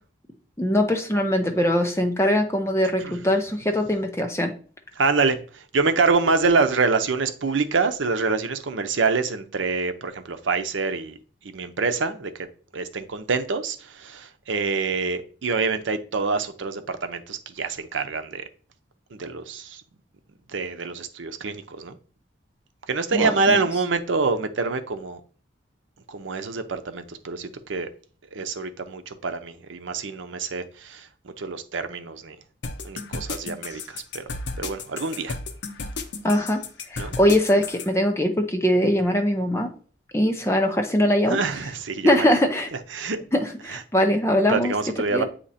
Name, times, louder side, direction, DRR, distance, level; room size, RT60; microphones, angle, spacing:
voice 1, 0.6-4.5 23.1-23.6 36.2-36.6 36.9-39.7 40.1-41.4 42.0-42.7 43.3-44.7 45.1-45.2, equal, 15° left, 4 dB, 0.6 m, -21 dB
voice 2, 5.0-11.2 11.5-12.5 12.7-18.4 19.1-19.8 20.5-22.0 22.9-25.2 26.1-27.9 28.3-32.4 32.8-34.2 34.6-35.4 37.0-37.1 41.3-42.3 42.9-43.2 43.7-43.8 44.5-45.2, right 4 dB, 90° right, 8 dB, 0.7 m, -26 dB
sound 1, 32.6-37.9, left 3 dB, 75° left, 0.7 m, -33 dB
8.5 x 2.9 x 4.1 m, 0.41 s
head